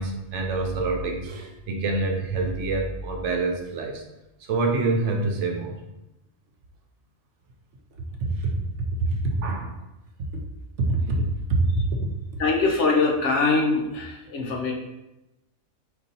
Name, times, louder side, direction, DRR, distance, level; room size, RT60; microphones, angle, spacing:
voice 1, 0.0-4.0 4.4-5.8 8.2-9.7 10.8-12.1, right 2 dB, 65° right, 2 dB, 0.9 m, -26 dB
voice 2, 12.4-14.7, left 3 dB, 65° left, 1 dB, 1.0 m, -23 dB
4.6 x 2.8 x 4.0 m, 0.95 s
omnidirectional pair, 1.4 m